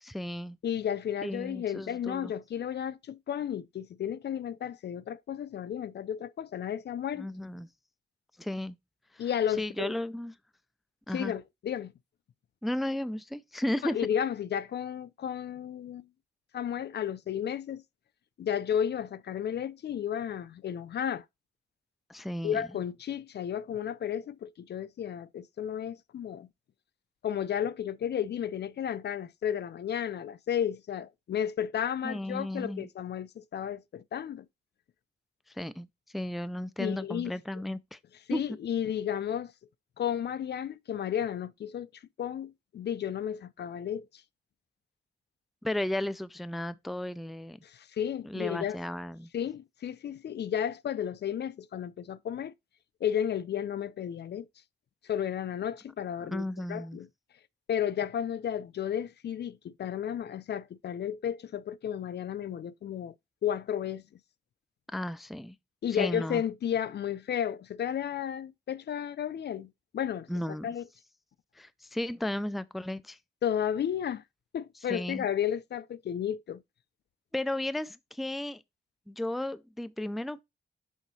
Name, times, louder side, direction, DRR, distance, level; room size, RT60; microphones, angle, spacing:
voice 1, 0.0-0.6 1.2-2.3 7.2-7.7 8.4-8.8 9.1-9.3 9.6-10.3 11.1-11.3 12.6-14.0 22.1-22.6 32.0-32.9 35.5-35.9 36.1-38.0 38.3-38.4 45.6-47.6 48.2-49.3 56.2-57.0 64.9-65.6 65.9-66.4 70.3-70.7 71.6-73.2 74.9-75.3 77.3-78.6 79.1-80.4, left 1 dB, ahead, 0.3 m, -34 dB
voice 2, 0.6-7.3 9.2-9.9 11.1-11.9 13.8-16.1 16.5-17.8 18.4-21.2 22.4-26.5 27.2-34.4 36.8-37.3 38.3-39.5 40.0-41.9 42.2-44.0 47.6-48.8 49.3-52.5 53.0-54.5 55.1-56.4 56.7-57.1 57.7-63.1 63.4-64.0 65.8-70.3 70.6-70.8 73.4-74.2 74.5-76.6, left 9 dB, 60° left, 0.4 m, -33 dB
6.4 x 3.8 x 4.0 m
wide cardioid pair, 110°, 19 cm